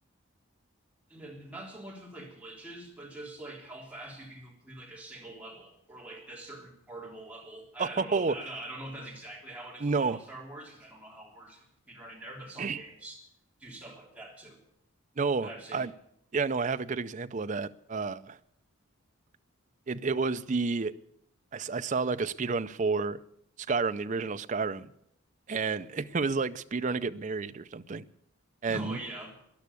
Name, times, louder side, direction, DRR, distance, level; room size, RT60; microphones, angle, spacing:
voice 1, 1.1-13.2 13.6-14.6 15.4-15.9 28.7-29.4, right 1 dB, 5° right, -3 dB, 3.3 m, -44 dB
voice 2, 7.8-8.4 9.8-10.2 12.6-12.8 15.2-15.9 16.3-18.4 19.9-20.9 21.5-23.2 23.6-24.9 25.5-28.0 28.6-29.0, right 4 dB, 35° right, 11 dB, 0.5 m, -30 dB
13.0 x 11.0 x 8.3 m, 0.74 s
head